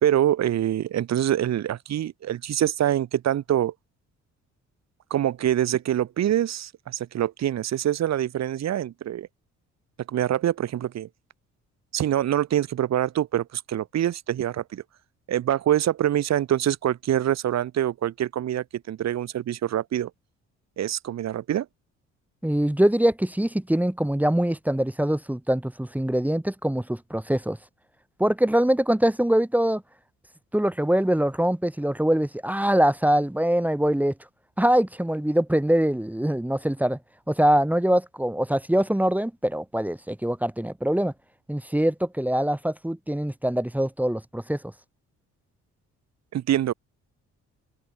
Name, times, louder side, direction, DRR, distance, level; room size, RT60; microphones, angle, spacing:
voice 1, 0.0-3.7 5.1-9.3 10.1-11.1 11.9-14.8 15.3-20.1 20.8-21.7 46.3-46.7, right 11 dB, 60° right, 1.3 m, -25 dB
voice 2, 22.4-27.6 28.2-29.8 30.5-34.1 34.6-37.0 37.3-41.1 41.5-44.6, right 1 dB, 5° right, 2.9 m, -23 dB
open air
cardioid pair, 90°, 30 cm